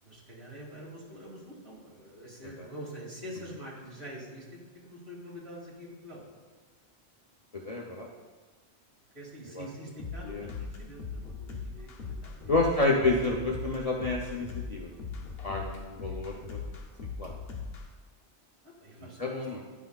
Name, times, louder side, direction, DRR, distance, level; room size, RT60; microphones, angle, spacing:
voice 1, 0.0-6.2 9.1-12.8 15.6-16.2 18.6-19.4, equal, 65° right, -6 dB, 2.6 m, -46 dB
voice 2, 7.5-8.1 9.5-9.7 10.2-10.5 12.5-14.9 15.4-16.6 17.2-17.3 19.2-19.6, left 2 dB, 40° left, -2 dB, 0.6 m, -29 dB
sound 1, 10.0-17.9, left 5 dB, 65° left, 1.0 m, -39 dB
12.0 x 5.9 x 2.3 m, 1.3 s
omnidirectional pair, 1.2 m